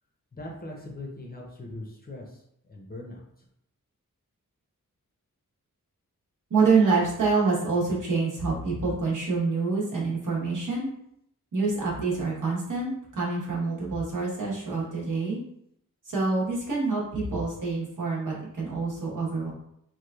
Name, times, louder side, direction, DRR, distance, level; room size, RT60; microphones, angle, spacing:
voice 1, 0.3-2.4 2.7-3.5, left 2 dB, 30° left, -1 dB, 0.6 m, -40 dB
voice 2, 6.5-10.9 11.5-15.4 16.1-19.5, right 4 dB, 70° right, -5 dB, 1.0 m, -26 dB
3.0 x 2.3 x 2.3 m, 0.74 s
wide cardioid pair, 95°, 33 cm